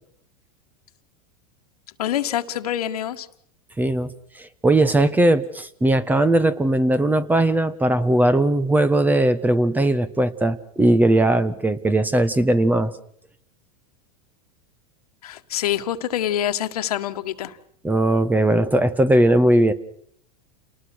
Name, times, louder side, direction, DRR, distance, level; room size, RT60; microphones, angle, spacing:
voice 1, 2.0-3.3 15.2-17.6, left 11 dB, 85° left, 8 dB, 1.8 m, -26 dB
voice 2, 3.8-4.1 4.6-12.9 17.8-19.7, right 1 dB, 10° right, 15 dB, 1.4 m, -19 dB
29.5 x 19.5 x 6.4 m, 0.65 s
supercardioid pair, 125°, 19 cm